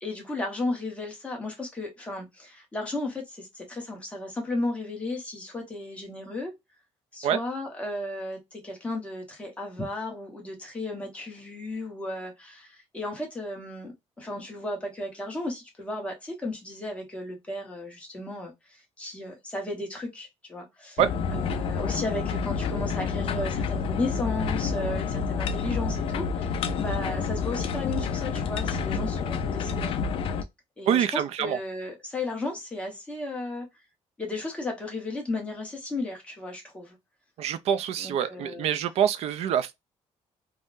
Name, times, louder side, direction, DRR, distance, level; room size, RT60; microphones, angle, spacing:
voice 1, 0.0-6.5 7.1-21.0 21.3-29.9 30.8-33.7 34.2-36.9 37.9-38.7, left 2 dB, 10° left, 1.0 m, -34 dB
sound 1, 21.0-30.4, left 5 dB, 50° left, 0.4 m, -29 dB
voice 2, 30.9-31.6 37.4-39.7, right 9 dB, 60° right, 0.4 m, -25 dB
3.6 x 2.1 x 2.5 m
cardioid pair, 175°, 12 cm